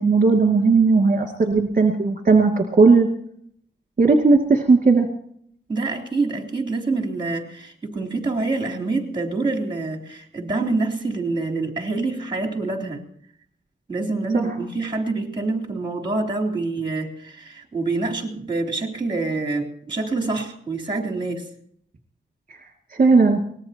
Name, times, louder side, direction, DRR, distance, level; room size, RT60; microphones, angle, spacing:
voice 1, 0.0-3.1 4.0-5.1 14.3-14.5 22.9-23.4, right 4 dB, 40° right, 2 dB, 2.3 m, -16 dB
voice 2, 5.7-13.0 13.9-21.5, right 3 dB, 25° right, 2 dB, 3.6 m, -26 dB
24.0 x 19.5 x 2.9 m, 0.65 s
wide cardioid pair, 80°, 20 cm